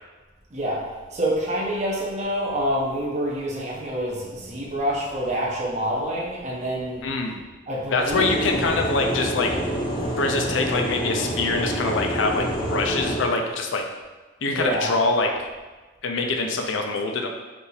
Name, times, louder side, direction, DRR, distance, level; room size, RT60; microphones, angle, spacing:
voice 1, 1.1-7.0 7.7-8.6 14.5-14.9, equal, 35° right, -4 dB, 0.9 m, -27 dB
voice 2, 7.0-7.4 7.9-9.5 10.2-13.9 14.4-15.5 16.0-17.3, left 3 dB, 65° left, 3 dB, 0.5 m, -24 dB
sound 1, 8.1-13.2, right 1 dB, 25° left, 0.6 m, -27 dB
5.3 x 2.6 x 3.2 m, 1.3 s
head